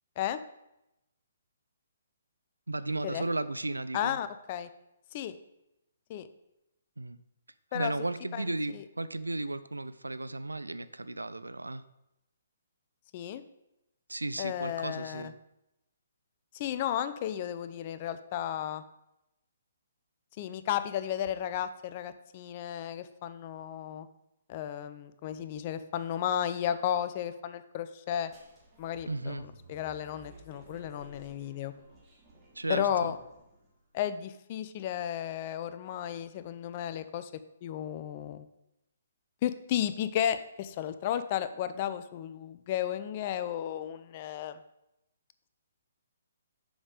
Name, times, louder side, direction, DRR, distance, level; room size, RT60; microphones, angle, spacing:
voice 1, 2.7-4.2 7.0-7.2 7.7-11.8 14.1-15.3 29.1-29.5 32.6-33.1, right 2 dB, 90° right, 14 dB, 0.4 m, -34 dB
voice 2, 3.9-4.7 5.1-5.4 6.1-6.3 7.7-7.9 8.3-8.8 13.1-13.4 14.4-15.3 16.5-18.8 20.4-24.1 24.5-28.3 28.8-31.7 32.7-33.2 33.9-37.3 37.6-38.5 39.4-44.6, left 10 dB, 35° left, 12 dB, 0.5 m, -33 dB
sound 1, 28.2-33.8, right 1 dB, 20° right, 1.7 m, -56 dB
7.1 x 5.3 x 5.0 m, 0.88 s
figure-of-eight pair, 135°, 0 cm